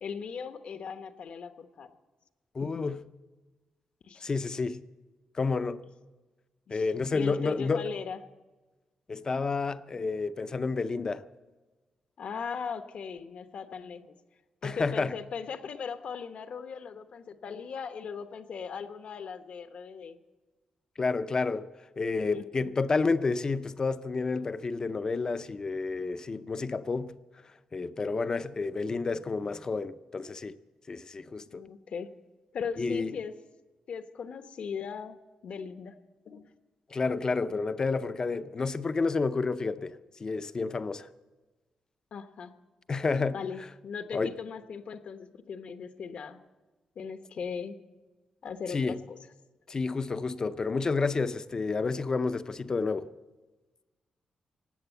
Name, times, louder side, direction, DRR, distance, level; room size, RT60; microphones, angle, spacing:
voice 1, 0.0-1.9 2.6-2.8 4.0-4.3 6.7-6.9 7.1-8.2 12.2-14.1 14.6-20.2 22.3-22.7 31.5-32.1 32.5-33.3 33.9-35.2 35.4-36.0 36.3-36.5 37.5-37.6 42.1-42.5 43.3-46.4 47.0-47.8 48.4-49.2, left 6 dB, 65° left, 1.0 m, -38 dB
voice 2, 2.5-3.0 4.2-4.8 5.4-5.8 6.7-7.8 9.1-11.2 14.6-15.1 21.0-21.7 22.0-27.1 27.7-30.6 30.9-31.6 32.8-33.1 36.9-41.1 42.9-43.4 44.1-44.3 48.7-49.0 49.7-53.1, left 4 dB, 30° left, 0.5 m, -30 dB
18.0 x 8.5 x 8.2 m
wide cardioid pair, 135°, 2 cm